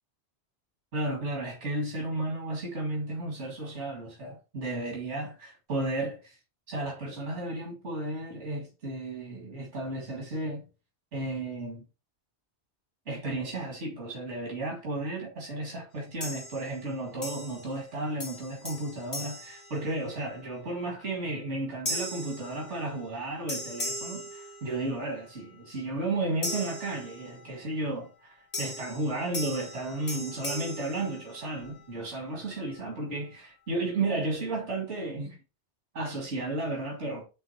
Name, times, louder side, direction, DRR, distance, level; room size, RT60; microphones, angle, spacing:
voice 1, 0.9-5.3 5.7-6.4 6.7-10.7 11.1-11.9 13.1-35.4 35.9-37.2, right 2 dB, 90° right, 2.2 m, -33 dB
sound 1, 16.2-16.9 17.2-17.9 18.2-20.4 20.9-21.2 21.9-23.2 23.5-25.1 26.4-27.6 28.5-31.8, left 1 dB, 65° left, 1.9 m, -38 dB
9.1 x 3.8 x 2.8 m
omnidirectional pair, 1.2 m